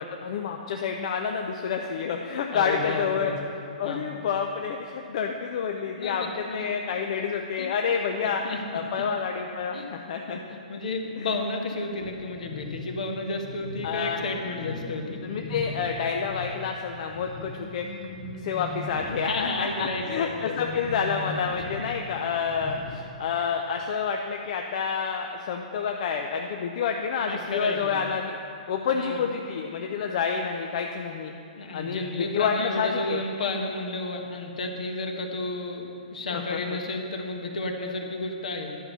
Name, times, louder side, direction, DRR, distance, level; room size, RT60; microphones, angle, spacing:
voice 1, 0.2-3.3 3.8-8.4 8.7-10.4 11.2-11.3 13.8-14.3 15.2-17.9 18.4-28.3 28.7-31.3 31.7-33.2 36.3-36.8, left 6 dB, 55° left, 3 dB, 0.6 m, -29 dB
voice 2, 2.5-3.3 3.8-4.1 5.0-5.1 6.0-6.7 7.6-7.7 8.4-8.6 9.7-9.9 10.3-15.2 19.3-20.5 27.2-27.9 28.9-29.3 31.6-38.8, left 2 dB, 70° left, 3 dB, 1.4 m, -32 dB
sound 1, 12.0-16.6 17.0-23.0, left 2 dB, 15° left, 1.2 m, -39 dB
11.0 x 5.6 x 7.0 m, 2.6 s
hypercardioid pair, 125°, 4 cm